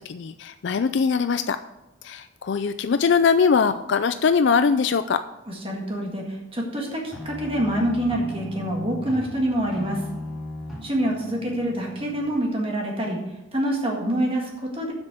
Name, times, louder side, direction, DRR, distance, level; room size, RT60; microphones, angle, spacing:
voice 1, 0.1-1.6 2.0-5.2, left 5 dB, 55° left, 11 dB, 0.4 m, -21 dB
voice 2, 5.5-10.0 10.8-13.2 13.5-14.9, right 1 dB, 25° right, 0 dB, 1.8 m, -26 dB
sound 1, 7.1-12.3, left 1 dB, ahead, 2.1 m, -37 dB
7.7 x 6.2 x 7.6 m, 0.93 s
head